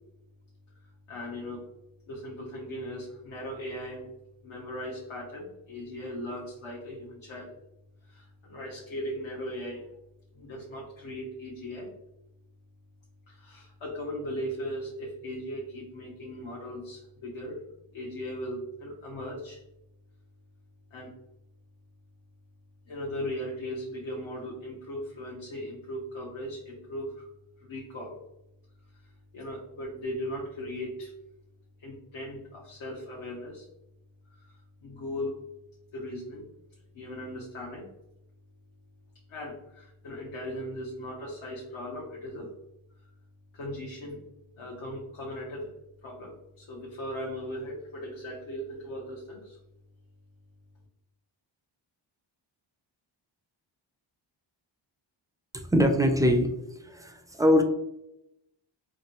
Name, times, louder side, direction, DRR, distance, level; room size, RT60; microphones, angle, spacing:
voice 1, 1.1-1.6 2.1-4.1 4.4-7.5 8.0-9.9 10.3-11.9 13.3-17.6 17.9-19.6 20.9-21.1 22.9-27.3 27.6-28.2 29.3-31.1 31.8-33.7 34.3-35.4 35.9-36.5 36.9-37.9 39.3-42.5 43.5-44.2 44.6-45.8 46.0-49.6, equal, 70° left, -3 dB, 0.8 m, -38 dB
voice 2, 55.5-56.5 56.8-57.6, equal, 10° right, 5 dB, 0.3 m, -23 dB
3.1 x 2.5 x 2.9 m, 0.88 s
cardioid pair, 60°, 49 cm